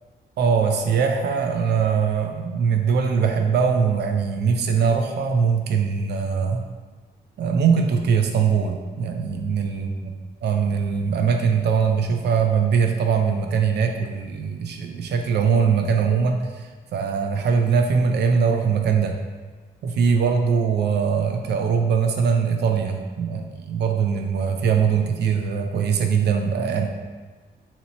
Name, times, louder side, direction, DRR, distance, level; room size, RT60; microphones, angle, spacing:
voice 1, 0.4-6.6 7.4-9.9 10.4-16.5 16.9-19.1 19.8-26.9, right 6 dB, 70° right, 4 dB, 0.4 m, -21 dB
2.8 x 2.8 x 4.2 m, 1.4 s
wide cardioid pair, 150°, 18 cm